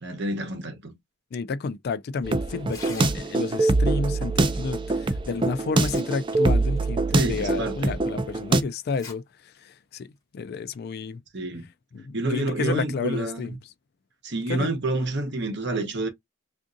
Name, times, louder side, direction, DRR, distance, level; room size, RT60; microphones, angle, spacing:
voice 1, 0.0-0.9 7.1-8.0 11.3-11.7 12.1-13.6 14.2-16.1, right 2 dB, 55° right, 1.0 m, -28 dB
voice 2, 1.3-10.1 10.3-11.2 11.9-13.6 14.5-14.7, left 4 dB, 50° left, 0.3 m, -31 dB
sound 1, 2.2-8.6, right 2 dB, 25° right, 0.4 m, -24 dB
Tearing, 2.6-3.6 5.0-5.1 5.6-6.4 6.7-6.8 7.5-7.6 8.8-9.1 9.5-9.6 10.5-10.7, left 4 dB, 15° left, 1.7 m, -43 dB
3.5 x 2.5 x 2.5 m
head